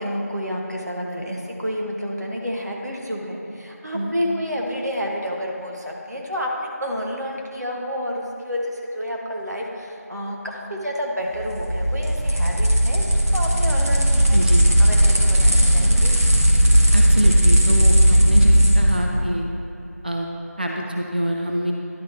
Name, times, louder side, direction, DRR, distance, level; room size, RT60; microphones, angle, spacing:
voice 1, 0.0-14.4 14.8-16.1 19.1-19.3, equal, 85° right, -1 dB, 1.6 m, -29 dB
sound 1, 11.4-19.0, equal, 65° right, 1.7 m, -16 dB
voice 2, 14.3-14.7 16.9-19.5 20.0-20.3 20.6-21.7, right 1 dB, 35° right, 1 dB, 0.5 m, -25 dB
11.0 x 4.1 x 4.6 m, 2.9 s
figure-of-eight pair, 175°, 9 cm